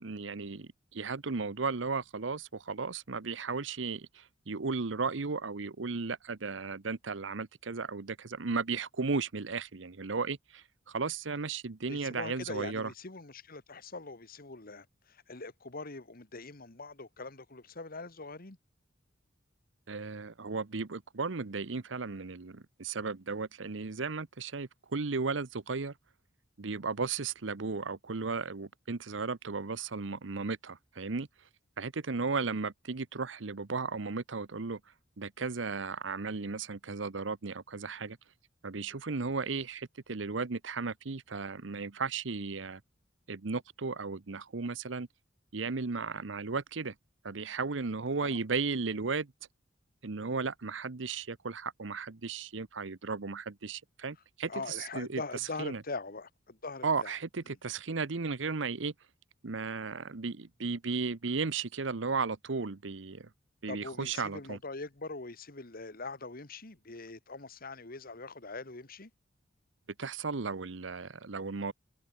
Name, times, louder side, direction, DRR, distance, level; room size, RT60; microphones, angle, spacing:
voice 1, 0.0-12.9 19.9-25.9 26.6-31.3 31.8-34.8 35.2-38.2 38.6-42.8 43.3-45.1 45.5-46.9 47.2-49.3 50.0-55.2 55.6-55.8 56.8-58.9 59.4-63.3 63.6-64.6 70.0-71.7, right 4 dB, 75° right, 0.9 m, -35 dB
voice 2, 11.9-18.6 48.2-48.4 54.5-57.2 63.7-69.1, left 3 dB, 50° left, 1.9 m, -42 dB
head